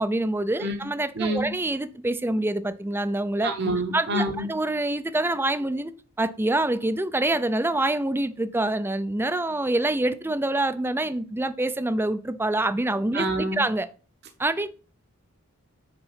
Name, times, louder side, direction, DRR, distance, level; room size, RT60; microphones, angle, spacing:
voice 1, 0.0-3.5 3.9-5.9 6.2-13.9 14.4-14.7, right 1 dB, 10° right, 0.5 m, -26 dB
voice 2, 1.1-1.5 3.4-4.5 13.1-13.6, right 1 dB, 50° right, 1.0 m, -27 dB
6.8 x 4.5 x 5.7 m
head